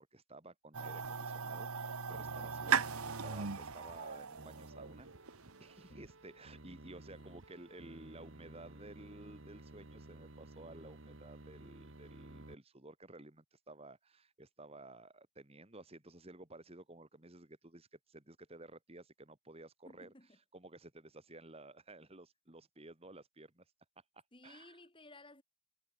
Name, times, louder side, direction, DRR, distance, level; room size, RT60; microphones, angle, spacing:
voice 1, 0.0-5.3 5.6-20.1 20.5-23.7 24.1-24.8, right 2 dB, 25° right, 2.0 m, -54 dB
sound 1, 0.7-5.7, right 6 dB, 75° right, 1.4 m, -38 dB
sound 2, 2.1-12.5, right 2 dB, 55° right, 1.8 m, -55 dB
voice 2, 19.8-20.3 24.3-25.4, left 2 dB, 20° left, 3.2 m, -57 dB
head